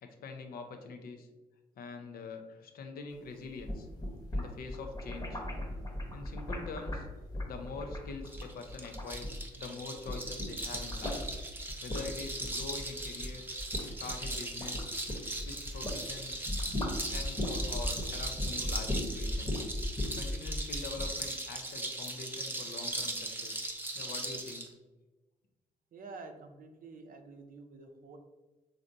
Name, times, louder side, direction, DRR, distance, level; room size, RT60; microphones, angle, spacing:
voice 1, 0.0-1.3 1.8-3.9 4.3-5.4 6.1-7.1 7.4-11.2 11.8-13.4 14.0-14.9 15.3-16.4 17.1-19.6 20.1-23.7 23.9-24.7, left 4 dB, 70° left, 5 dB, 0.5 m, -44 dB
sound 1, 3.5-9.7 10.0-16.0 16.3-21.1, left 1 dB, 25° left, 0.9 m, -37 dB
sound 2, 8.3-24.7, right 1 dB, 15° right, 0.6 m, -39 dB
voice 2, 25.9-28.2, right 3 dB, 60° right, 5 dB, 0.5 m, -49 dB
3.3 x 2.6 x 2.6 m, 1.2 s
supercardioid pair, 50°, 16 cm